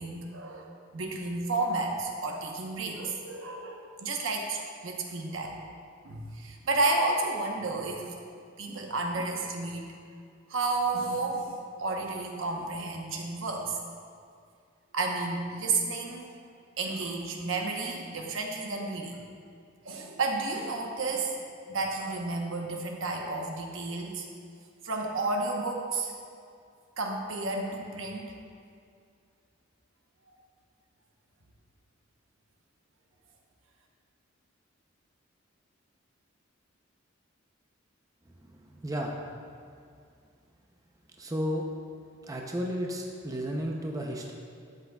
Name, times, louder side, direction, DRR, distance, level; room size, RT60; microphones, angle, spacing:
voice 1, 0.0-5.5 6.0-8.1 8.6-9.9 10.5-13.8 14.9-16.3 16.8-19.2 19.8-21.3 21.7-24.3 24.8-26.1 27.0-28.3, right 3 dB, 70° right, 1 dB, 1.0 m, -31 dB
voice 2, 38.5-39.2 41.2-41.7 42.2-44.3, equal, 15° right, 0 dB, 0.5 m, -33 dB
12.0 x 7.8 x 2.3 m, 2.3 s
head